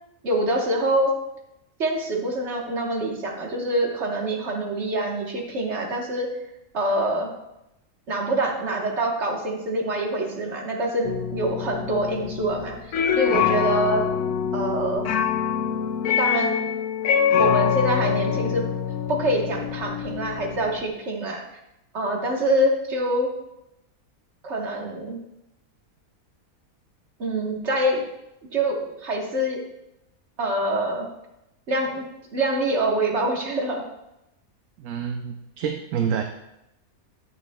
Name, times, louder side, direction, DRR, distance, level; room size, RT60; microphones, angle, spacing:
voice 1, 0.2-1.1 1.8-6.3 6.7-7.3 8.1-14.1 14.5-15.1 16.2-16.5 17.4-18.6 19.1-21.4 21.9-23.3 24.4-25.2 27.2-28.0 28.5-29.6 30.4-31.1 31.7-32.1 32.3-33.8, right 1 dB, 50° right, 0 dB, 1.6 m, -25 dB
sound 1, 11.0-20.8, left 8 dB, 85° left, 1.1 m, -25 dB
voice 2, 34.8-36.2, right 7 dB, 65° right, 5 dB, 0.9 m, -27 dB
11.0 x 8.1 x 2.3 m, 0.88 s
omnidirectional pair, 1.6 m